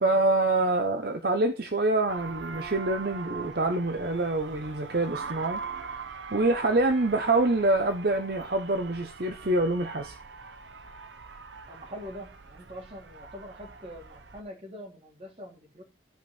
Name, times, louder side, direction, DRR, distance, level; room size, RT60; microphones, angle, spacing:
voice 1, 0.0-5.6 6.3-10.1, right 2 dB, 60° right, 6 dB, 0.8 m, -26 dB
sound 1, 2.1-14.4, right 5 dB, 90° right, 0.9 m, -42 dB
voice 2, 11.7-15.8, equal, 35° right, 1 dB, 2.9 m, -44 dB
13.5 x 5.2 x 4.3 m, 0.28 s
head